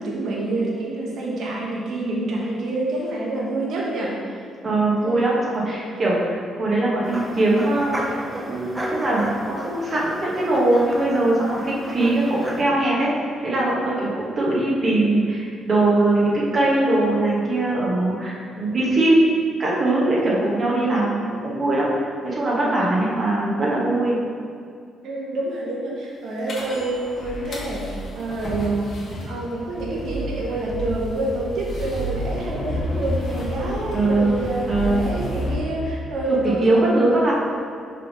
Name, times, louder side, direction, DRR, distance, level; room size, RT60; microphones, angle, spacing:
voice 1, 0.0-4.4 5.0-5.3 13.4-13.6 25.0-28.9 29.3-37.0, right 2 dB, 70° right, -4 dB, 1.3 m, -27 dB
voice 2, 4.6-13.1 13.4-21.9 22.2-24.2 33.9-34.4 34.7-35.0 36.3-37.3, right 2 dB, 40° right, -6 dB, 1.4 m, -21 dB
sound 1, 7.0-12.6, right 1 dB, 15° right, 0.9 m, -33 dB
sound 2, 26.5-35.6, equal, 55° left, 1.5 m, -30 dB
5.5 x 3.6 x 5.4 m, 2.3 s
cardioid pair, 90°, 0 cm